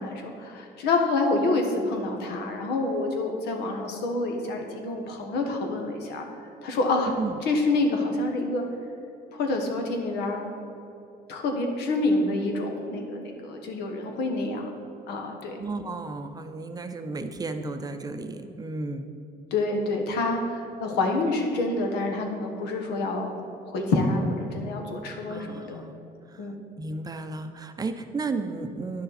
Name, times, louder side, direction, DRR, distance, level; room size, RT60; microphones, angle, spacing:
voice 1, 0.0-6.2 6.6-7.1 7.4-8.6 9.3-10.4 11.3-14.6 15.1-15.6 19.5-23.3 23.6-25.8 26.4-26.6, left 2 dB, 80° left, 3 dB, 1.3 m, -27 dB
voice 2, 15.6-19.1 25.3-25.9 26.3-26.5 26.8-29.0, right 3 dB, 20° right, 8 dB, 0.6 m, -33 dB
10.5 x 6.7 x 4.2 m, 2.7 s
cardioid pair, 110°, 17 cm